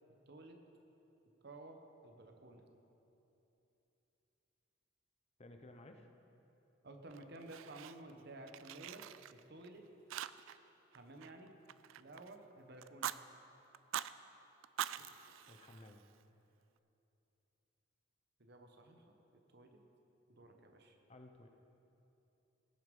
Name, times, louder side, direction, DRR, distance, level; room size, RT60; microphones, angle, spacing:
voice 1, 0.3-0.6 1.4-2.7 6.8-9.9 10.9-11.5 11.9-13.1 15.0-15.1 18.4-19.8 20.3-21.0, right 2 dB, 55° right, 4 dB, 1.1 m, -54 dB
voice 2, 5.4-6.1 15.5-16.0 20.5-20.6 21.1-21.5, left 1 dB, 30° left, 5 dB, 0.7 m, -56 dB
Fire, 7.1-8.2 8.5-9.7 10.1-10.7 10.9-12.3 12.8-13.2 13.7-14.1 14.6-16.2, right 11 dB, 70° right, 0.3 m, -44 dB
19.0 x 6.6 x 5.3 m, 3.0 s
head